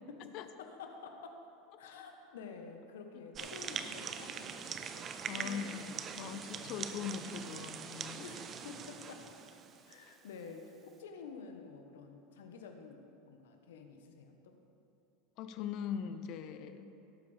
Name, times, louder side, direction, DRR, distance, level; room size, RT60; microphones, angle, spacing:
voice 1, 0.1-1.4 1.8-5.1 5.4-6.0 6.5-6.8 8.2-9.3 9.9-13.0 13.3-14.6, left 5 dB, 75° left, 5 dB, 1.2 m, -50 dB
sound 1, 3.3-10.1, right 7 dB, 35° right, 0.7 m, -43 dB
voice 2, 5.3-5.8 6.2-8.2 15.4-16.9, left 8 dB, 55° left, 10 dB, 0.7 m, -41 dB
16.5 x 8.6 x 3.5 m, 2.8 s
hypercardioid pair, 90°, 0 cm